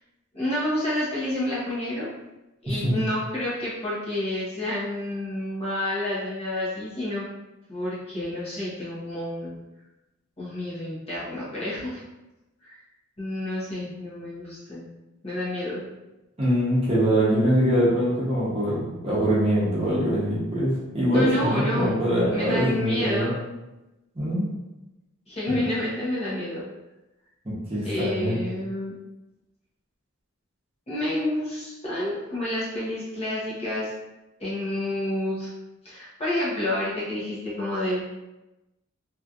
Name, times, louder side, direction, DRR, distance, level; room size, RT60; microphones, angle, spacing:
voice 1, 0.3-2.1 2.6-7.2 7.7-9.6 10.4-12.0 12.6-12.8 13.2-14.9 15.2-15.8 21.1-23.5 25.3-26.6 27.8-28.9 30.9-33.9 34.4-35.5 35.8-38.0, left 1 dB, 30° left, -8 dB, 1.2 m, -29 dB
voice 2, 2.7-3.0 16.4-23.3 24.1-24.5 25.5-25.6 27.4-28.4, equal, 30° right, -8 dB, 1.0 m, -23 dB
3.1 x 2.9 x 2.5 m, 0.99 s
head